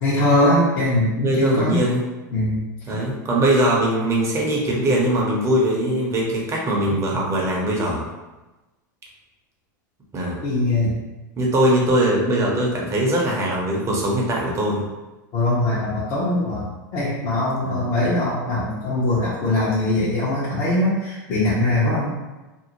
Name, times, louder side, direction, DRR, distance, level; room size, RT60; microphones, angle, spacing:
voice 1, 0.0-1.8 2.3-2.6 10.4-10.9 15.3-22.1, left 1 dB, 50° left, -9 dB, 0.9 m, -21 dB
voice 2, 1.2-2.0 2.9-8.1 10.1-10.4 11.4-14.8 17.6-17.8, right 1 dB, 25° right, -3 dB, 0.8 m, -21 dB
2.6 x 2.1 x 2.9 m, 1.1 s
hypercardioid pair, 105°, 10 cm